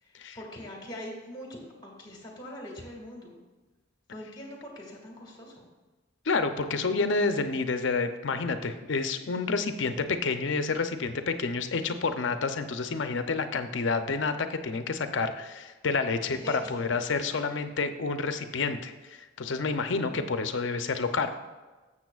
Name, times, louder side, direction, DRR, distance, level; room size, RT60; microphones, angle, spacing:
voice 1, 0.0-1.5 1.8-3.4 4.1-5.6 16.3-16.8 17.2-17.5, equal, 20° left, -1 dB, 2.0 m, -42 dB
voice 2, 6.3-18.9 19.4-21.4, left 4 dB, 65° left, 8 dB, 0.6 m, -29 dB
12.5 x 7.4 x 2.4 m, 1.2 s
head